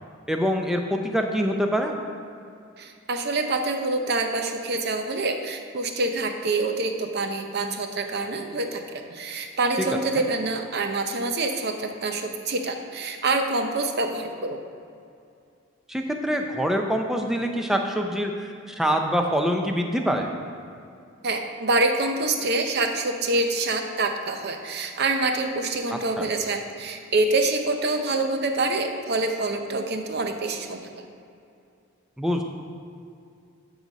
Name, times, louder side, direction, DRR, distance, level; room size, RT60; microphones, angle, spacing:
voice 1, 0.3-1.9 9.8-9.9 15.9-18.3 18.7-20.3 26.2-26.3 32.2-32.4, equal, ahead, 3 dB, 0.5 m, -25 dB
voice 2, 2.8-14.6 21.2-30.9, right 2 dB, 50° right, 5 dB, 0.7 m, -26 dB
12.0 x 4.0 x 5.2 m, 2.5 s
head